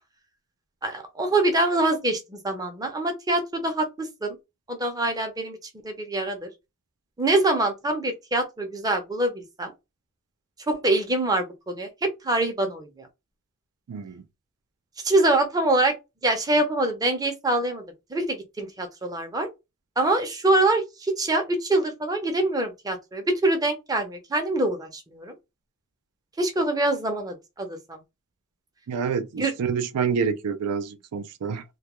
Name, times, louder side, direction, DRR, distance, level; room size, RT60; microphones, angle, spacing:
voice 1, 0.8-4.4 4.7-5.6 5.8-6.5 7.2-9.7 10.7-13.1 15.0-16.0 16.2-17.8 18.1-19.5 20.0-25.3 26.4-28.0 29.4-29.5, right 2 dB, 15° right, 0.5 m, -25 dB
voice 2, 13.9-14.2 28.9-31.6, right 6 dB, 85° right, 0.4 m, -27 dB
2.3 x 2.2 x 2.9 m
head